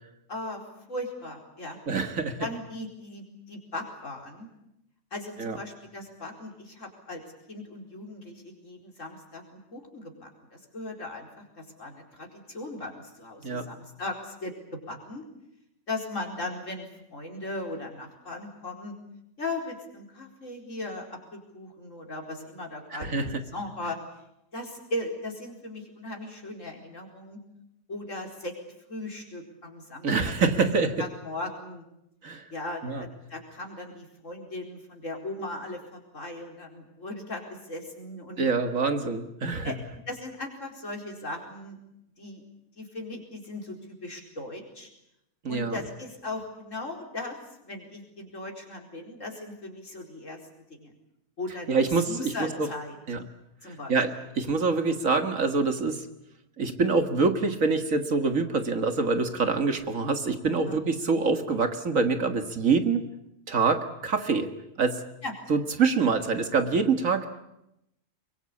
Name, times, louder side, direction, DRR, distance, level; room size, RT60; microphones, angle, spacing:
voice 1, 0.3-0.6 0.9-1.8 2.4-4.5 5.1-7.2 7.5-15.3 15.9-18.9 19.4-24.0 24.5-27.4 27.9-28.6 28.9-30.3 30.6-31.8 32.5-38.5 39.6-39.8 40.1-41.8 42.2-42.4 42.8-44.9 45.5-47.4 47.6-50.4 50.7-50.9 51.4-53.0 53.6-54.0 54.6-54.7 60.5-60.8 65.2-65.3, left 2 dB, 60° left, 1 dB, 4.9 m, -38 dB
voice 2, 1.9-2.5 5.4-5.6 13.4-13.7 22.9-23.4 30.0-31.0 32.2-32.5 32.8-33.0 38.4-39.7 45.4-45.8 51.7-52.7 53.1-53.2 53.9-56.0 56.6-63.0 63.5-64.5 64.8-65.1 65.5-67.4, right 4 dB, 70° right, 7 dB, 2.2 m, -25 dB
23.0 x 23.0 x 8.5 m, 0.85 s
omnidirectional pair, 1.5 m